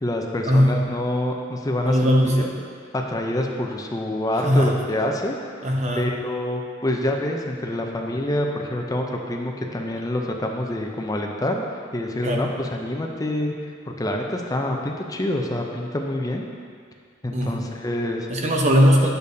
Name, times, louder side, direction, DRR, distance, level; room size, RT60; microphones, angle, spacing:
voice 1, 0.0-2.4 2.9-5.4 6.0-11.6 11.9-13.5 13.9-16.4 17.2-18.3, left 1 dB, 20° left, 1 dB, 0.5 m, -26 dB
voice 2, 1.8-2.5 4.4-4.7 5.6-6.1 12.2-12.4 17.3-17.6 18.3-19.1, equal, 35° right, 0 dB, 0.8 m, -19 dB
8.5 x 6.7 x 2.7 m, 2.1 s
head